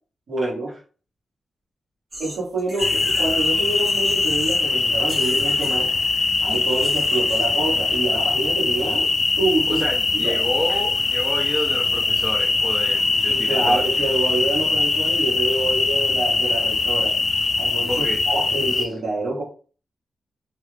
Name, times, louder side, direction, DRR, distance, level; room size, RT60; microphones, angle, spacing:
voice 1, 0.3-0.7 2.2-5.9 6.4-9.1 9.4-9.8 10.2-10.4 13.3-17.2 17.6-19.4, right 2 dB, 70° right, -3 dB, 1.5 m, -26 dB
sound 1, 2.1-4.7 5.0-7.6, right 1 dB, 35° right, 1.0 m, -38 dB
sound 2, 2.8-18.9, left 3 dB, 40° left, 0.4 m, -22 dB
voice 2, 9.7-13.9 17.9-18.2 18.8-18.9, equal, 20° right, -1 dB, 0.5 m, -29 dB
2.8 x 2.3 x 3.3 m, 0.38 s
wide cardioid pair, 170°, 0 cm